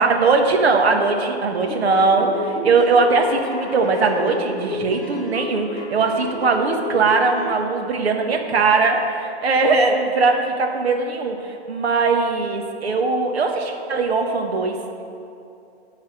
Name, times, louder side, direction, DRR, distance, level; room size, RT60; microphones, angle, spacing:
voice 1, 0.0-14.8, right 4 dB, 65° right, 3 dB, 1.5 m, -20 dB
sound 1, 1.6-7.5, left 2 dB, 10° left, 1.3 m, -31 dB
11.0 x 4.0 x 7.8 m, 2.7 s
hypercardioid pair, 155°, 34 cm